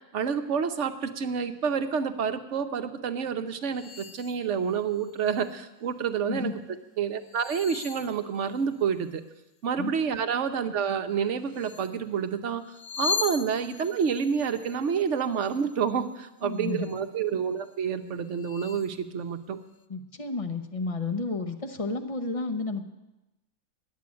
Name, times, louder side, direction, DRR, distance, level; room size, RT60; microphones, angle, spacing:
voice 1, 0.1-6.5 7.0-9.2 9.6-12.6 13.0-19.6, right 7 dB, 60° right, 9 dB, 1.1 m, -28 dB
sound 1, 3.7-4.4 4.9-5.5 7.2-8.8 11.5-12.0 12.6-16.1 16.5-17.0 17.6-17.7 18.2-19.0, left 5 dB, 70° left, 1.1 m, -38 dB
voice 2, 16.4-16.9 19.9-22.9, left 3 dB, 30° left, 6 dB, 0.8 m, -31 dB
11.0 x 8.5 x 9.5 m, 1.0 s
omnidirectional pair, 1.5 m